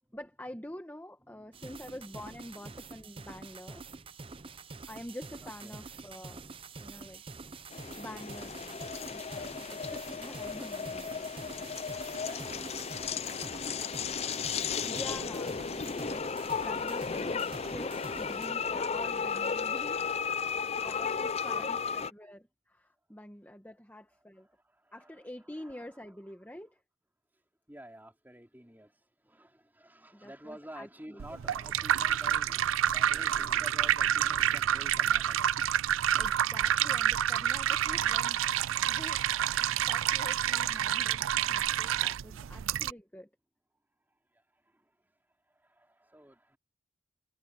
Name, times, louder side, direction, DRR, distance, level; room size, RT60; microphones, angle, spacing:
voice 1, 0.1-3.8 4.9-6.5 6.8-7.2 8.0-8.8 9.1-11.3 14.8-24.5 24.9-26.8 30.1-31.2 36.2-39.2 39.9-43.3, left 1 dB, 10° left, 1.3 m, -47 dB
voice 2, 1.2-1.7 2.1-2.8 5.4-5.8 10.9-11.4 12.2-14.5 14.8-15.2 15.9-16.3 20.8-22.1 23.1-23.2 24.1-26.4 27.3-36.2 43.9-46.6, right 1 dB, 10° right, 3.5 m, -53 dB
sound 1, 1.5-18.5, right 3 dB, 30° right, 0.7 m, -47 dB
sound 2, 7.7-22.1, left 6 dB, 30° left, 0.5 m, -34 dB
sound 3, 31.2-42.9, right 10 dB, 85° right, 0.4 m, -28 dB
head